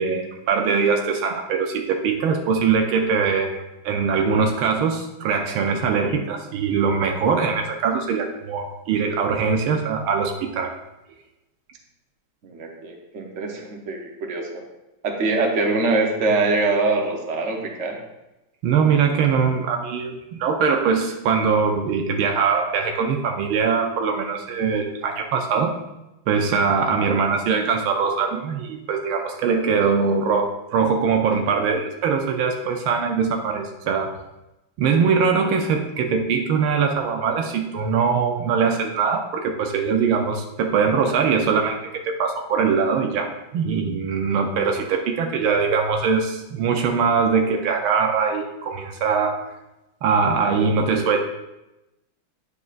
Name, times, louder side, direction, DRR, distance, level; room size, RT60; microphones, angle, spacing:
voice 1, 0.0-10.8 18.6-25.8 26.3-34.1 34.8-49.4 50.0-51.2, right 5 dB, 85° right, 3 dB, 1.5 m, -22 dB
voice 2, 12.4-14.6 15.0-18.0, right 3 dB, 45° right, 1 dB, 1.1 m, -23 dB
9.6 x 6.7 x 2.5 m, 0.96 s
omnidirectional pair, 2.2 m